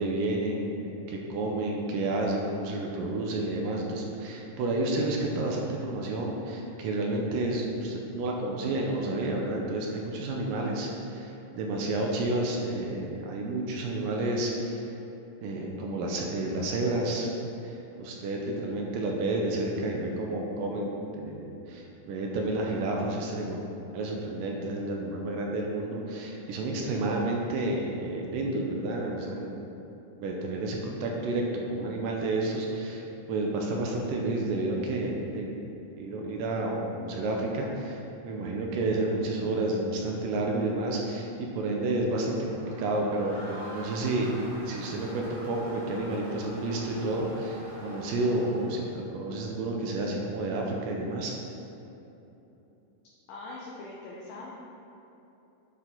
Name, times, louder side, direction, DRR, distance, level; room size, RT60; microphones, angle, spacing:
voice 1, 0.0-14.9 15.4-17.3 17.6-23.6 23.9-29.7 30.2-35.5 36.0-44.4 44.7-51.3, right 2 dB, 80° right, 0 dB, 2.3 m, -30 dB
Crowd, 42.2-49.1, right 1 dB, 60° right, 2.8 m, -45 dB
voice 2, 53.3-54.5, left 2 dB, 75° left, -5 dB, 2.1 m, -42 dB
10.0 x 4.6 x 3.7 m, 2.9 s
omnidirectional pair, 4.1 m